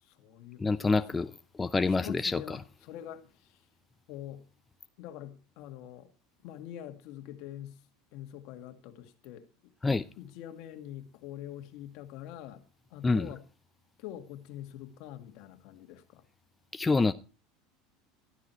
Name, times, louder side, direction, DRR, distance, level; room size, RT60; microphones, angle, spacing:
voice 1, 0.0-0.8 1.1-1.3 1.9-3.6 4.1-4.4 5.0-6.1 6.4-7.8 8.1-9.7 10.2-12.6 12.9-13.4 14.0-16.2, left 11 dB, 65° left, 2.0 m, -45 dB
voice 2, 0.6-2.6 9.8-10.0 13.0-13.3 16.7-17.1, left 3 dB, 15° left, 0.5 m, -27 dB
13.0 x 12.5 x 4.5 m
supercardioid pair, 120°, 0 cm